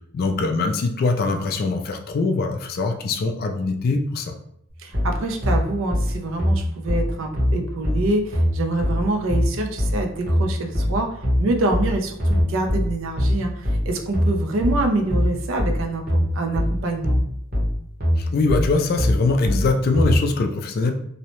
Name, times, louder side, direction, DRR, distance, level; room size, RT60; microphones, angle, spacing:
voice 1, 0.1-4.3 18.2-20.9, left 3 dB, 45° left, 5 dB, 0.3 m, -22 dB
voice 2, 4.8-17.2, right 2 dB, 65° right, 3 dB, 0.4 m, -26 dB
sound 1, 4.9-20.2, equal, 50° right, 1.0 m, -22 dB
2.7 x 2.0 x 2.9 m, 0.72 s
head